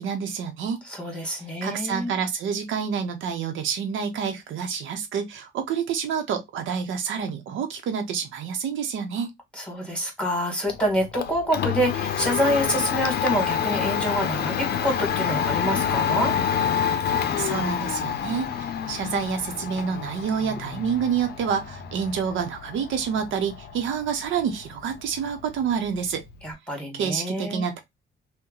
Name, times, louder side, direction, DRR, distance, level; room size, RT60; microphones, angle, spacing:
voice 1, 0.0-0.8 1.6-9.3 17.4-26.2 26.9-27.8, right 7 dB, 80° right, 0.8 m, -28 dB
voice 2, 0.9-2.2 9.6-16.3 26.4-27.7, equal, 5° left, 1.5 m, -27 dB
Domestic sounds home sounds, 10.7-26.5, left 8 dB, 55° left, 0.6 m, -28 dB
2.7 x 2.2 x 3.7 m
cardioid pair, 90°, 20 cm